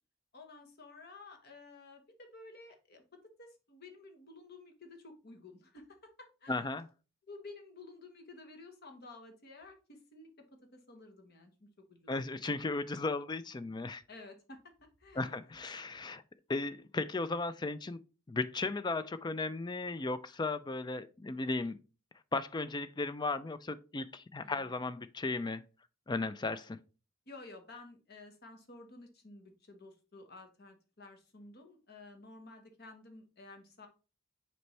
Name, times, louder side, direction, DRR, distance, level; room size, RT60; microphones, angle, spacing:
voice 1, 0.3-6.7 7.3-10.3 10.7-12.4 14.1-14.6 15.0-15.6 24.4-24.7 27.3-33.9, left 3 dB, 45° left, 1.3 m, -53 dB
voice 2, 6.5-6.9 12.1-14.0 15.2-16.2 16.5-18.0 18.3-21.8 22.3-25.6 26.1-26.8, left 3 dB, 20° left, 0.4 m, -35 dB
6.8 x 4.4 x 3.3 m
head